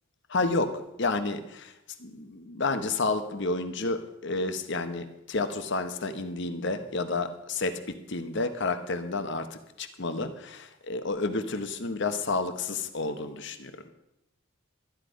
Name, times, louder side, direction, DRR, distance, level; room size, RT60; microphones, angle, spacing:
voice 1, 0.3-1.7 2.0-7.8 8.1-13.9, left 3 dB, 60° left, 9 dB, 1.1 m, -30 dB
13.0 x 10.0 x 5.2 m, 0.88 s
head